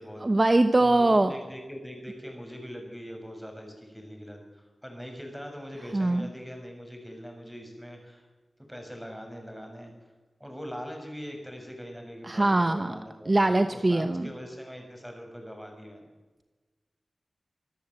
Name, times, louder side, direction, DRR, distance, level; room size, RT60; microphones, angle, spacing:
voice 1, 0.2-1.3 5.9-6.3 12.3-12.9 13.3-14.3, right 2 dB, 35° right, 9 dB, 1.1 m, -22 dB
voice 2, 0.8-8.3 8.7-9.9 10.4-16.1, equal, ahead, 2 dB, 6.9 m, -42 dB
25.5 x 14.0 x 7.8 m, 1.2 s
wide cardioid pair, 65°, 0 cm